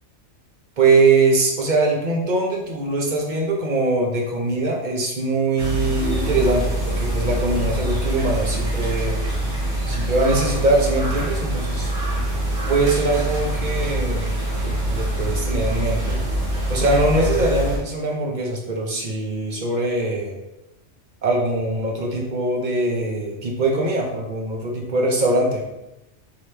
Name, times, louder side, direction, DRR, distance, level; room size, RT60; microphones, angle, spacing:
voice 1, 0.8-9.2 9.9-11.9 12.7-14.3 14.6-16.2 16.7-20.4 21.2-25.6, right 2 dB, 45° right, -1 dB, 0.8 m, -22 dB
sound 1, 5.6-17.8, right 1 dB, 75° right, 1.8 m, -24 dB
4.8 x 2.9 x 3.3 m, 0.94 s
omnidirectional pair, 1.2 m